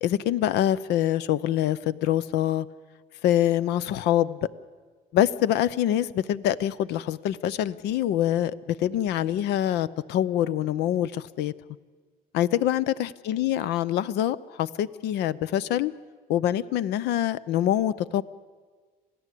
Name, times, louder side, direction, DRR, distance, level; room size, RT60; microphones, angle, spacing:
voice 1, 0.0-2.7 3.2-4.4 5.1-11.5 12.3-15.9 16.3-18.2, left 11 dB, 80° left, 17 dB, 0.7 m, -25 dB
27.0 x 17.0 x 8.4 m, 1.5 s
cardioid pair, 110°, 17 cm